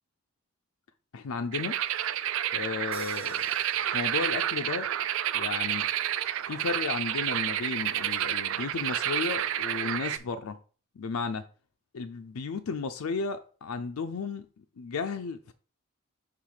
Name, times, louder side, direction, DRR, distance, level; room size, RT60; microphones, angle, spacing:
voice 1, 1.1-1.8 2.5-3.5 3.9-4.9 5.3-5.9 6.5-10.6 11.0-11.4 11.9-14.5 14.8-15.5, left 5 dB, 85° left, 0.5 m, -34 dB
sound 1, 1.5-10.2, right 11 dB, 65° right, 0.3 m, -30 dB
sound 2, 2.9-5.1, right 5 dB, 25° right, 0.8 m, -49 dB
5.7 x 3.6 x 4.8 m
head